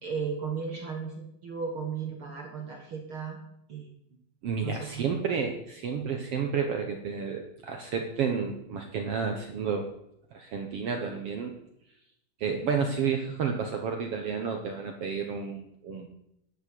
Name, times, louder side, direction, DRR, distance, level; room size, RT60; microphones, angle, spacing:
voice 1, 0.0-3.4 3.7-3.9 4.6-5.2, right 6 dB, 60° right, 2 dB, 1.4 m, -35 dB
voice 2, 4.4-9.9 10.3-11.5 12.4-16.1, right 6 dB, 85° right, 4 dB, 1.3 m, -31 dB
12.5 x 7.8 x 8.5 m, 0.78 s
omnidirectional pair, 4.4 m